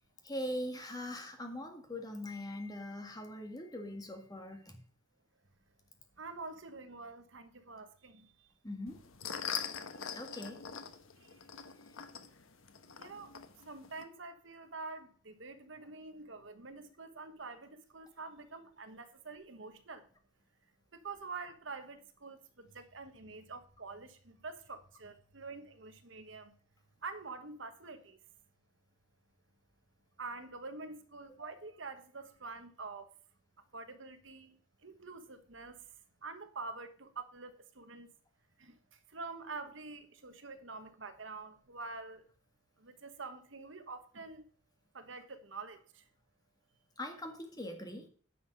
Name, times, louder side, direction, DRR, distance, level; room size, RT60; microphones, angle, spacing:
voice 1, 0.2-4.8 8.6-9.0 10.1-10.6 31.4-31.5 47.0-48.1, left 1 dB, 20° left, 1.8 m, -41 dB
voice 2, 6.2-8.5 11.2-11.4 13.0-13.3 13.6-20.1 20.9-26.5 27.0-28.2 30.2-33.1 33.7-35.8 36.2-38.1 38.6-42.2 42.8-44.5 44.9-46.0, right 3 dB, 65° right, 1.2 m, -47 dB
sound 1, 8.9-14.0, left 7 dB, 85° left, 1.1 m, -43 dB
10.0 x 5.7 x 6.5 m
head